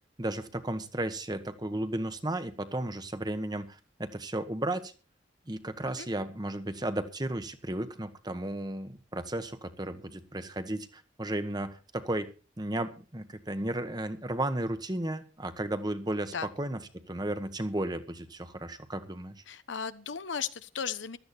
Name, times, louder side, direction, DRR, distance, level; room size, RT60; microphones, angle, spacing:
voice 1, 0.2-4.9 5.5-12.3 12.6-16.8 17.1-19.4, right 1 dB, 20° right, 10 dB, 1.2 m, -34 dB
voice 2, 19.5-21.2, left 6 dB, 75° left, 13 dB, 1.0 m, -36 dB
15.0 x 12.5 x 4.3 m, 0.35 s
head